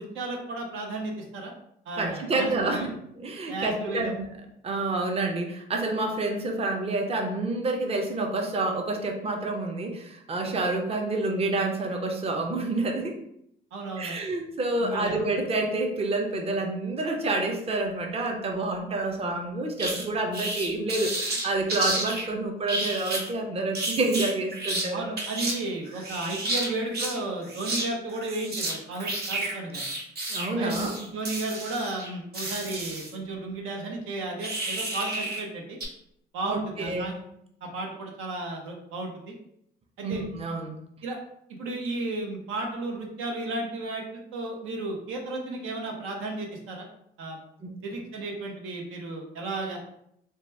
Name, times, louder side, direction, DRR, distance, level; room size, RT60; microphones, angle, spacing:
voice 1, 0.0-1.5 1.9-2.9 3.5-4.1 13.7-14.2 14.8-15.2 24.9-29.8 30.6-35.8 36.3-37.2 37.6-39.3 40.0-40.2 41.0-41.2 41.5-46.9 47.2-47.4 47.8-49.9, right 2 dB, 90° right, 1 dB, 0.7 m, -33 dB
voice 2, 2.0-2.9 3.2-4.2 4.6-13.1 14.0-25.1 30.3-30.9 36.5-37.1 40.0-40.7 47.6-47.7, right 2 dB, 30° right, 2 dB, 0.5 m, -28 dB
sound 1, 19.8-20.0 20.3-22.3 22.7-23.3 23.7-24.9 25.2-25.5 25.9-27.2 27.4-27.9 28.1-33.1 34.4-35.4 35.8-35.9, right 2 dB, 55° right, 0.9 m, -31 dB
2.9 x 2.2 x 3.2 m, 0.74 s
cardioid pair, 90°, 20 cm